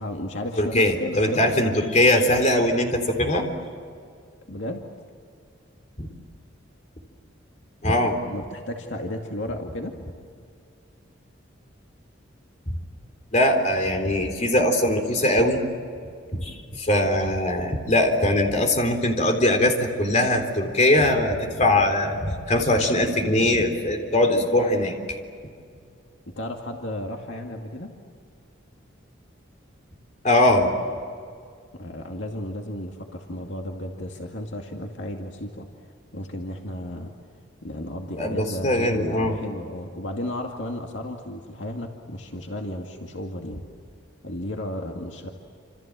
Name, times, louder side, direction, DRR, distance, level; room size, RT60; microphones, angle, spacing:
voice 1, 0.0-1.7 4.5-4.9 8.0-9.9 26.3-27.9 31.7-35.7 36.1-37.1 37.6-43.6 44.2-45.3, left 1 dB, 70° left, 2 dB, 2.3 m, -34 dB
voice 2, 0.6-3.5 6.0-6.1 7.8-8.2 12.7-12.8 13.3-15.6 16.3-25.2 30.2-30.7 38.2-39.4, left 1 dB, 35° left, 4 dB, 3.8 m, -21 dB
28.0 x 27.5 x 7.6 m, 2.2 s
head